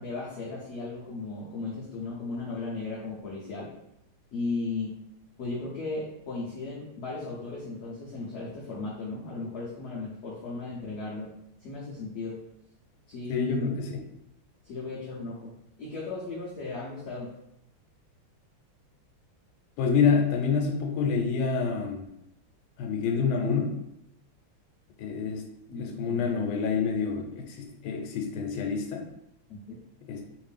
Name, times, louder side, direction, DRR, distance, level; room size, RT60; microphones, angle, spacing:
voice 1, 0.0-3.7 4.3-4.9 5.4-11.3 11.6-12.4 13.1-13.8 14.6-15.5 15.8-17.3 25.7-26.3 29.5-29.8, left 3 dB, 65° left, -6 dB, 1.0 m, -36 dB
voice 2, 13.3-13.9 19.8-22.0 22.8-23.7 25.0-25.4 25.7-27.5 27.8-29.0 30.1-30.2, left 5 dB, 85° left, 1 dB, 1.5 m, -27 dB
3.5 x 2.5 x 3.3 m, 0.80 s
omnidirectional pair, 2.3 m